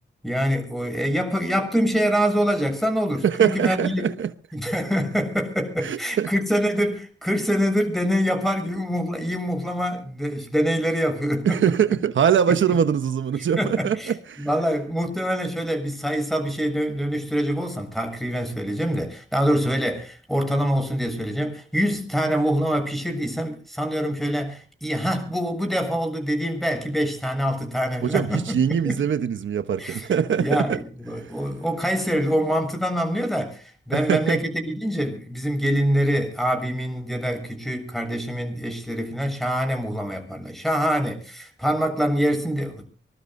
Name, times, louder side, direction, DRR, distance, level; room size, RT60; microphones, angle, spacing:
voice 1, 0.2-4.1 4.5-11.6 12.5-12.6 13.4-28.6 28.8-29.0 29.8-30.1 30.4-42.9, equal, ahead, 7.3 m, -25 dB
voice 2, 3.2-4.3 5.8-6.3 11.4-14.5 28.1-30.8 33.9-34.4, right 8 dB, 85° right, 1.0 m, -22 dB
24.5 x 21.0 x 2.6 m
cardioid pair, 80°, 19 cm